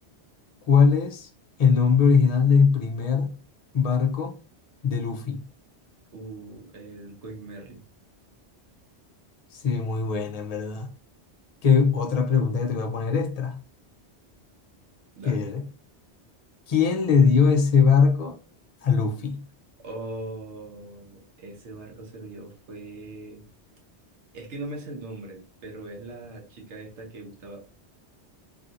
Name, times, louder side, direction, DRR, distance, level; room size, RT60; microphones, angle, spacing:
voice 1, 0.7-1.3 1.6-3.4 3.7-4.4 4.8-5.4 9.5-10.9 11.6-13.6 15.2-15.6 16.7-18.4 18.8-19.4, left 5 dB, 45° left, 0.5 m, -21 dB
voice 2, 6.1-7.8 15.2-15.4 19.8-23.5 24.3-27.6, right 2 dB, 80° right, 1.2 m, -40 dB
3.1 x 2.7 x 2.5 m
omnidirectional pair, 1.2 m